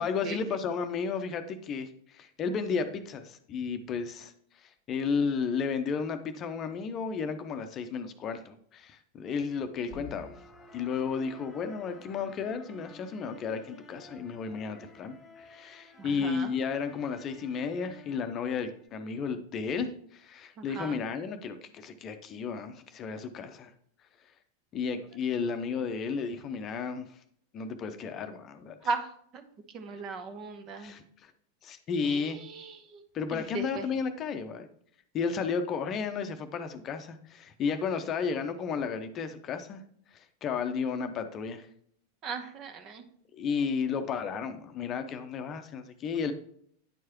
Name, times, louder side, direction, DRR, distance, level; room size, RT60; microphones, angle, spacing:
voice 1, 0.0-10.3 10.7-23.7 24.7-27.1 27.5-28.8 30.7-31.3 31.6-32.4 33.1-34.7 35.1-39.8 40.1-41.7 43.3-46.3, left 5 dB, 35° left, 8 dB, 0.7 m, -33 dB
sound 1, 9.9-18.9, left 2 dB, 20° left, 1.3 m, -52 dB
voice 2, 16.0-16.5 20.6-21.0 28.8-29.1 29.3-29.5 29.7-30.9 32.0-33.0 33.3-33.9 42.2-43.0, right 4 dB, 40° right, 7 dB, 1.0 m, -37 dB
9.6 x 4.6 x 3.0 m, 0.64 s
figure-of-eight pair, 90°, 0 cm